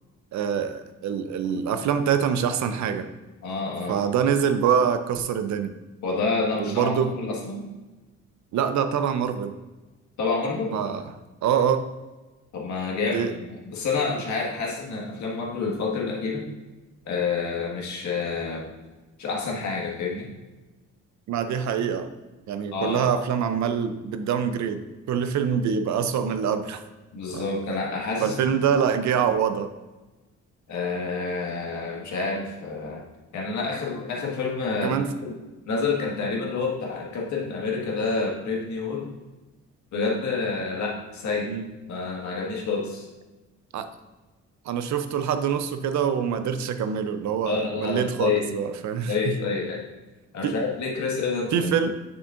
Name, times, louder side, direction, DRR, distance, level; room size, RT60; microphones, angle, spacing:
voice 1, 0.3-3.1 3.9-5.7 6.6-7.1 8.5-9.5 10.7-11.1 11.4-11.9 13.0-13.3 21.3-22.1 22.5-26.8 27.3-27.4 28.2-29.7 34.8-35.1 41.5-41.7 43.7-43.9 44.7-49.3 50.4-50.6 51.5-51.9, right 7 dB, 70° right, 10 dB, 0.6 m, -25 dB
voice 2, 3.4-4.0 6.0-7.7 10.2-10.8 12.5-16.5 17.1-18.7 19.2-20.3 22.7-23.0 27.1-28.4 30.7-33.0 33.3-35.3 35.7-39.1 39.9-41.5 41.9-43.0 47.4-48.4 49.1-49.8 50.3-51.7, left 4 dB, 70° left, -2 dB, 1.7 m, -28 dB
7.0 x 6.5 x 2.5 m, 1.2 s
cardioid pair, 90°, 30 cm